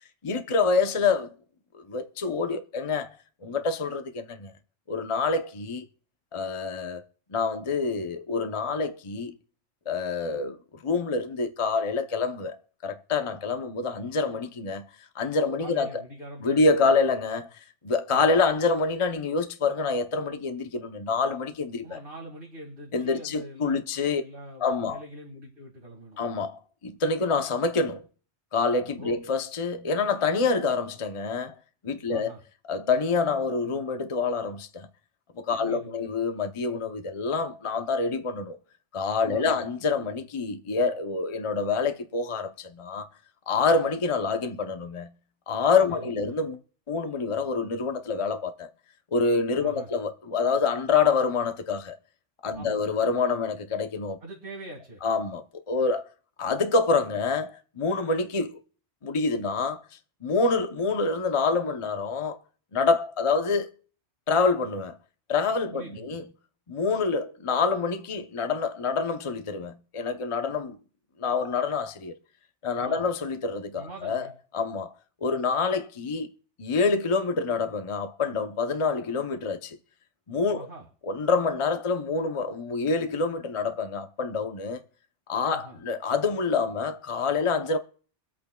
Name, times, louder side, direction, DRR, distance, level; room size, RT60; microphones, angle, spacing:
voice 1, 0.2-1.3 1.9-3.1 3.4-4.5 4.9-5.9 6.3-7.0 7.3-9.3 9.9-10.6 10.8-12.6 12.8-14.9 15.1-16.0 16.4-17.5 17.8-22.0 22.9-24.2 24.6-25.0 26.2-28.0 28.5-31.6 31.8-32.3 32.7-34.9 35.4-38.6 38.9-43.1 43.5-45.1 45.5-46.6 46.9-48.7 49.1-52.0 52.4-54.2 55.0-56.0 56.4-58.6 59.0-59.8 60.2-62.4 62.7-63.7 64.3-65.0 65.3-66.2 66.7-70.8 71.2-72.1 72.6-74.3 74.5-74.9 75.2-76.3 76.6-79.8 80.3-80.7 81.1-84.8 85.3-87.8, left 4 dB, 30° left, 0.7 m, -26 dB
voice 2, 15.6-17.0 18.1-18.3 21.8-26.2 29.0-29.2 32.1-32.4 35.6-36.1 39.3-39.6 45.9-46.3 49.6-49.9 52.5-52.8 54.2-55.0 65.7-66.2 72.8-73.1 73.8-74.3 80.5-80.9 85.5-85.8, right 1 dB, 45° right, 2.4 m, -44 dB
24.5 x 8.6 x 2.3 m
omnidirectional pair, 1.2 m